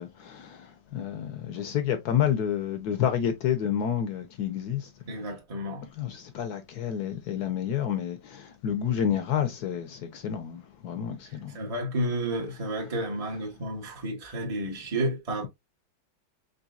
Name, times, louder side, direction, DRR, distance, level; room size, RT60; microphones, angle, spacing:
voice 1, 0.0-4.8 6.0-11.6, left 9 dB, 70° left, 1.0 m, -29 dB
voice 2, 5.1-5.9 11.2-15.5, right 1 dB, 35° right, 0.5 m, -31 dB
4.0 x 3.3 x 2.3 m
omnidirectional pair, 2.2 m